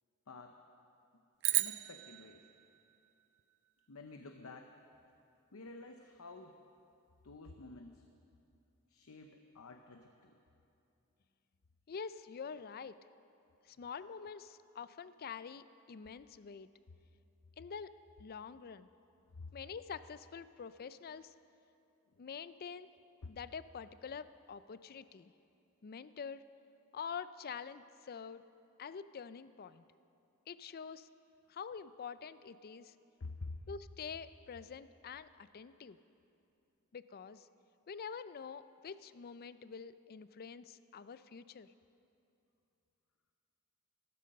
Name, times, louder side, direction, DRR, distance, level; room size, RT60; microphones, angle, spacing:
voice 1, 0.3-0.6 1.6-2.4 3.9-4.7 5.5-6.6 7.2-8.0 8.9-10.3 19.3-19.5 23.2-23.4 33.2-33.6, left 3 dB, 70° left, 5 dB, 0.7 m, -49 dB
sound 1, 1.4-3.9, right 18 dB, 55° right, 0.4 m, -37 dB
voice 2, 11.9-13.0 13.6-16.7 17.6-18.9 19.5-21.3 22.2-22.9 23.3-25.3 25.8-26.4 26.9-28.4 28.8-29.8 30.5-31.1 31.5-32.9 33.7-36.0 36.9-37.5 37.9-41.7, left 6 dB, 45° left, 14 dB, 0.4 m, -46 dB
14.0 x 13.0 x 6.5 m, 2.7 s
head